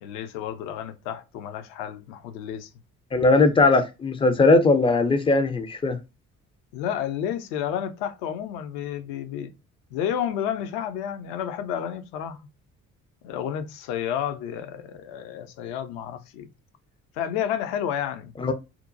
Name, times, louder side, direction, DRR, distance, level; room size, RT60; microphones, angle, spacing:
voice 1, 0.0-2.7 6.7-9.5 9.9-12.5 13.2-16.5 17.1-18.3, left 9 dB, 60° left, 0.5 m, -31 dB
voice 2, 3.1-6.0 18.4-18.5, left 3 dB, 15° left, 0.3 m, -19 dB
2.8 x 2.1 x 2.4 m
figure-of-eight pair, 45°, 41 cm